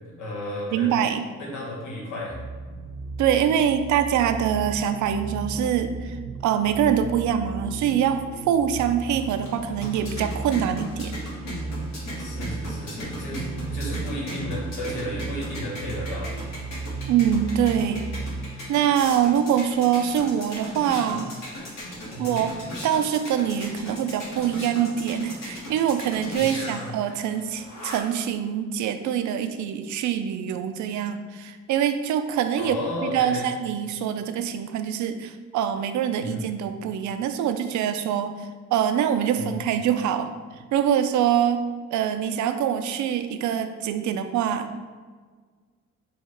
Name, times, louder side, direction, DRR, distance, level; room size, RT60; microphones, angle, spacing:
voice 1, 0.1-1.0 1.4-2.3 12.2-13.5 13.7-16.3 19.5-19.6 21.1-21.3 22.1-22.4 26.3-27.2 32.6-33.5 36.2-36.4 39.3-39.5, left 1 dB, 85° left, -4 dB, 1.4 m, -34 dB
voice 2, 0.7-1.3 3.2-6.2 6.4-11.1 17.1-18.1 18.7-21.3 22.2-22.6 22.8-38.4 38.7-40.3 40.7-41.6 41.9-44.8, right 9 dB, 70° right, 9 dB, 0.4 m, -24 dB
sound 1, 2.3-18.4, right 3 dB, 15° left, 1.3 m, -35 dB
sound 2, 9.1-28.2, equal, 65° left, 1.4 m, -38 dB
4.7 x 2.4 x 4.3 m, 1.5 s
cardioid pair, 90°, 30 cm